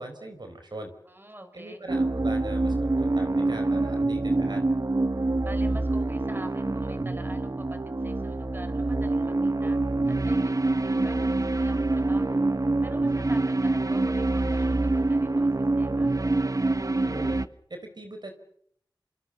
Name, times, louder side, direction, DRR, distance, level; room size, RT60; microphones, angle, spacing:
voice 1, 0.0-0.9 1.5-4.6 17.0-17.4 17.7-18.3, right 2 dB, 60° right, 6 dB, 4.5 m, -40 dB
voice 2, 1.1-1.9 5.4-9.8 10.1-12.4 12.8-16.1, right 1 dB, 25° right, 8 dB, 5.1 m, -46 dB
sound 1, 1.9-17.4, right 2 dB, 45° right, 1.1 m, -26 dB
27.5 x 26.5 x 6.9 m, 0.68 s
wide cardioid pair, 55°, 8 cm